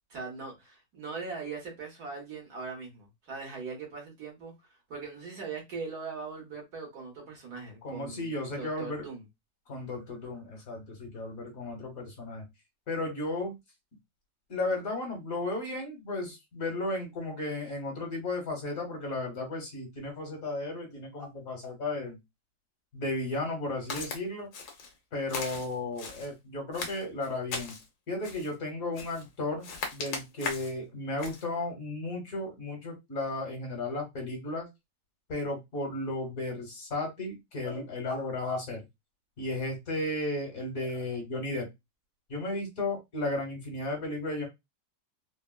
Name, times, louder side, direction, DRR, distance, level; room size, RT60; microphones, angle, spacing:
voice 1, 0.1-9.2, right 4 dB, 65° right, 0 dB, 1.7 m, -40 dB
voice 2, 7.8-9.0 9.7-12.5 12.9-13.6 14.5-22.2 22.9-24.5 25.1-27.8 28.1-34.7 35.3-38.8 39.4-41.7 42.3-44.5, left 2 dB, 55° left, 2 dB, 1.5 m, -34 dB
Walk footsteps, 23.9-24.2 24.5-24.9 25.3-26.3 26.7-27.9 28.2-28.5 28.9-29.3 29.6-30.8 31.2-31.4, left 4 dB, 90° left, 1.5 m, -38 dB
4.0 x 2.1 x 2.2 m, 0.19 s
omnidirectional pair, 1.9 m